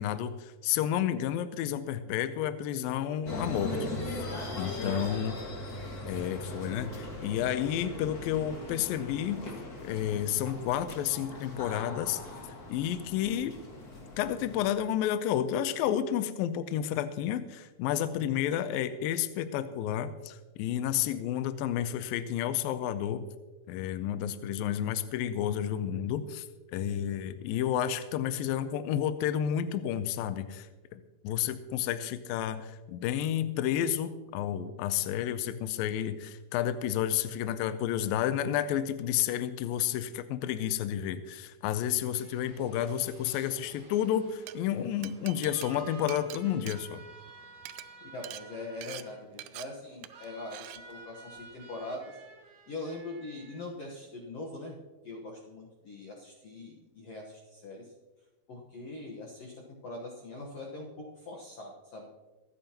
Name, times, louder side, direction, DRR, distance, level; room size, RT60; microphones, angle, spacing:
voice 1, 0.0-4.2 4.5-5.3 6.1-9.4 9.8-12.2 12.7-13.6 14.2-23.3 23.7-26.5 26.7-47.0, left 10 dB, 85° left, 11 dB, 2.1 m, -31 dB
sound 1, 3.3-14.7, left 2 dB, 50° left, 1.1 m, -39 dB
voice 2, 4.8-5.2 48.0-52.1 52.7-54.8 55.0-57.9 58.5-59.5 59.8-60.9 61.2-62.1, left 2 dB, 65° left, -3 dB, 1.5 m, -42 dB
sound 2, 42.1-53.6, right 4 dB, 70° right, 1.0 m, -52 dB
Glass, 44.3-44.5 45.0-47.3 47.6-47.8 48.2-48.4 48.8-49.0 49.4-49.6 50.0-50.3 50.5-50.8, right 15 dB, 85° right, 2.0 m, -44 dB
25.0 x 9.1 x 2.9 m, 1.2 s
omnidirectional pair, 4.6 m